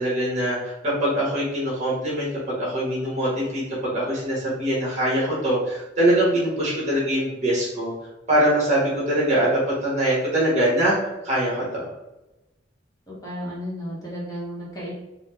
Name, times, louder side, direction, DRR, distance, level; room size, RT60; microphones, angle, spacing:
voice 1, 0.0-2.3 2.6-7.9 8.3-11.0 11.2-11.9, right 1 dB, 35° right, -6 dB, 1.5 m, -23 dB
voice 2, 13.1-14.9, equal, 20° left, -7 dB, 1.1 m, -33 dB
4.1 x 2.3 x 3.1 m, 0.98 s
head